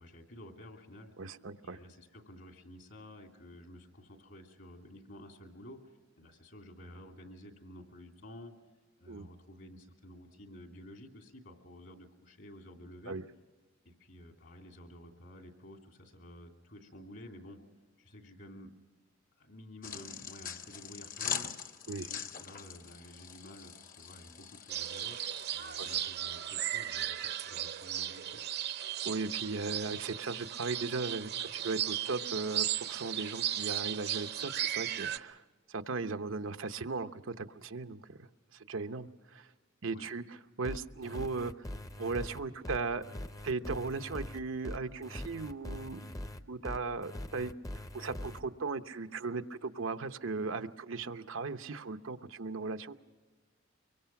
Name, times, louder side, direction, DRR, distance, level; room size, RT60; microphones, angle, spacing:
voice 1, 0.0-1.1 1.6-8.5 9.0-13.2 13.8-17.6 18.0-18.7 19.4-21.5 22.0-25.2 25.5-28.5 39.9-40.1, left 1 dB, 65° left, 3 dB, 2.9 m, -51 dB
voice 2, 1.2-1.8 9.1-9.3 13.1-13.2 21.9-22.1 29.0-35.4 35.7-39.5 39.8-41.5 42.0-43.0 43.4-46.2 46.5-47.5 47.9-53.0, right 4 dB, 90° right, 8 dB, 0.8 m, -37 dB
sound 1, 19.8-26.0, left 8 dB, 45° left, 0.9 m, -42 dB
sound 2, 24.7-35.2, right 11 dB, 55° right, 0.6 m, -36 dB
sound 3, 40.6-48.4, left 1 dB, 15° left, 0.6 m, -42 dB
24.5 x 23.5 x 5.9 m, 1.3 s
head